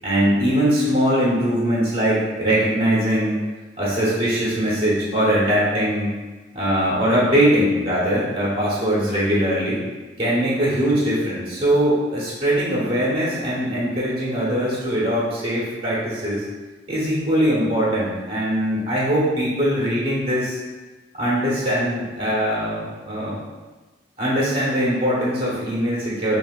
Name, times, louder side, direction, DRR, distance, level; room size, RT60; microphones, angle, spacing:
voice 1, 0.0-3.4 3.8-6.1 6.5-9.8 10.2-16.4 16.9-20.6 21.1-23.4 24.2-26.4, equal, 30° right, -8 dB, 1.0 m, -21 dB
5.4 x 2.5 x 2.4 m, 1.2 s
head